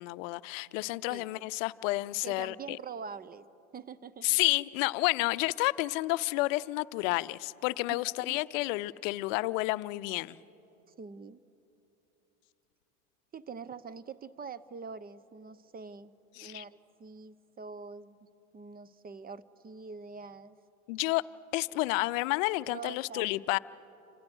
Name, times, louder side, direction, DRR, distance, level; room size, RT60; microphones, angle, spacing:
voice 1, 0.0-2.8 4.2-10.4 16.4-16.6 20.9-21.2 21.5-23.6, left 21 dB, 60° left, 16 dB, 0.7 m, -30 dB
voice 2, 2.2-3.4 3.7-4.3 7.9-8.4 11.0-11.4 13.3-18.2 18.5-20.6 22.7-23.3, right 5 dB, 20° right, 17 dB, 0.8 m, -44 dB
29.5 x 26.0 x 6.3 m, 3.0 s
hypercardioid pair, 85°, 43 cm